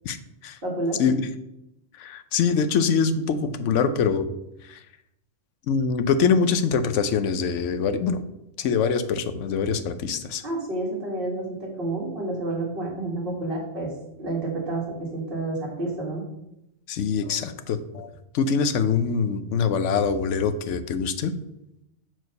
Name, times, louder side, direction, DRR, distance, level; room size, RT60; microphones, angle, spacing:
voice 1, 0.6-1.0 10.4-13.9 14.2-16.2, right 2 dB, 45° right, -5 dB, 1.8 m, -29 dB
voice 2, 2.0-4.3 4.7-4.8 5.7-8.2 8.6-10.4 16.9-18.1 18.3-21.3, left 6 dB, 80° left, 11 dB, 1.0 m, -24 dB
6.2 x 4.6 x 5.2 m, 0.86 s
omnidirectional pair, 1.3 m